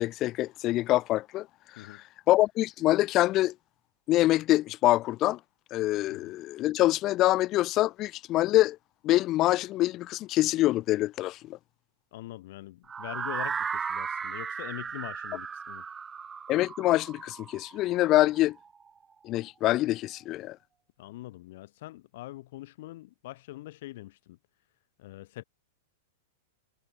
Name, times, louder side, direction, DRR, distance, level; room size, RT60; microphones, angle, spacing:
voice 1, 0.0-1.5 1.7-3.5 4.1-5.4 5.7-8.8 9.0-11.6 16.5-18.6 19.2-20.6, left 16 dB, 40° left, 0.5 m, -25 dB
voice 2, 12.1-15.8 21.0-24.4 25.0-25.4, left 17 dB, 60° left, 4.0 m, -43 dB
sound 1, 12.9-18.8, right 6 dB, 20° right, 0.6 m, -36 dB
hypercardioid pair, 120°, 0 cm